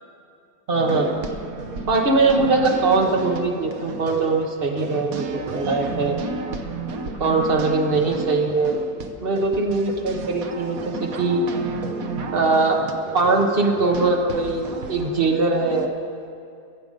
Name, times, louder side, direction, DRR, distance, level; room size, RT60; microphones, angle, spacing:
voice 1, 0.7-1.1 1.9-5.3 5.5-6.2 7.2-8.8 9.2-11.4 12.3-12.8 13.1-16.0, right 3 dB, 35° right, 1 dB, 1.3 m, -21 dB
sound 1, 0.7-15.9, right 4 dB, 55° right, 1.2 m, -32 dB
22.0 x 8.1 x 5.3 m, 2.4 s
omnidirectional pair, 1.9 m